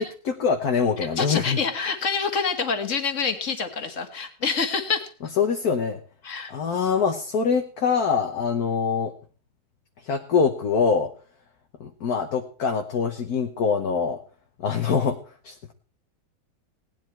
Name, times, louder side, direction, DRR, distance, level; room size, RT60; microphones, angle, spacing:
voice 1, 0.4-1.6 5.4-6.0 6.5-9.1 10.0-11.1 11.8-14.2 14.6-15.2 15.4-15.7, left 6 dB, 60° left, 4 dB, 1.5 m, -24 dB
voice 2, 1.2-5.1 6.2-6.5, left 5 dB, 45° left, 7 dB, 1.9 m, -26 dB
18.0 x 11.0 x 4.5 m, 0.39 s
omnidirectional pair, 1.9 m